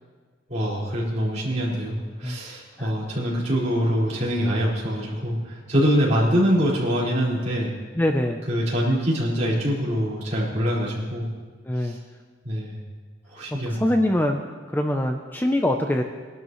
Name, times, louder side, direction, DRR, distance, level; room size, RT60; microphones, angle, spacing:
voice 1, 0.5-7.7 8.5-11.3 11.8-12.0 12.4-12.8 13.3-13.9, equal, 40° right, -7 dB, 4.7 m, -24 dB
voice 2, 8.0-8.4 11.7-12.0 13.7-16.0, left 1 dB, 10° left, 4 dB, 0.6 m, -23 dB
22.5 x 12.0 x 3.1 m, 1.5 s
head